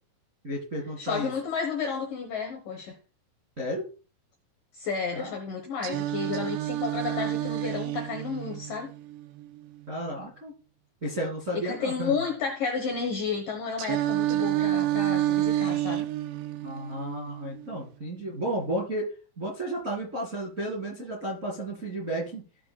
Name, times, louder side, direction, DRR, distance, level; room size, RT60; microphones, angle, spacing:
voice 1, 0.4-1.3 3.6-3.9 5.1-5.3 9.9-10.5 11.0-12.1 16.6-19.1 19.4-22.4, right 1 dB, 30° right, 1.6 m, -32 dB
voice 2, 1.0-3.0 4.7-8.9 11.5-16.0, left 5 dB, 70° left, 2.1 m, -32 dB
Singing, 5.8-9.8 13.8-17.8, right 14 dB, 85° right, 2.4 m, -29 dB
16.0 x 5.9 x 2.2 m
omnidirectional pair, 5.4 m